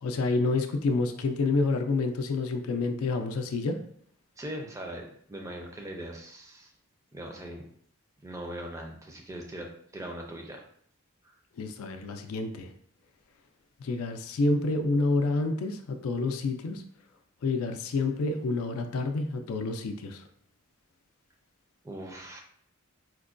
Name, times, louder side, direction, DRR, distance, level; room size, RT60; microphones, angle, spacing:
voice 1, 0.0-3.8 11.6-12.7 13.8-16.8 17.4-20.3, left 3 dB, 90° left, 5 dB, 0.4 m, -28 dB
voice 2, 4.4-6.7 7.1-7.6 8.2-10.6 11.2-11.3 21.8-22.4, right 1 dB, 15° right, 1 dB, 0.4 m, -40 dB
4.4 x 2.2 x 2.4 m, 0.62 s
head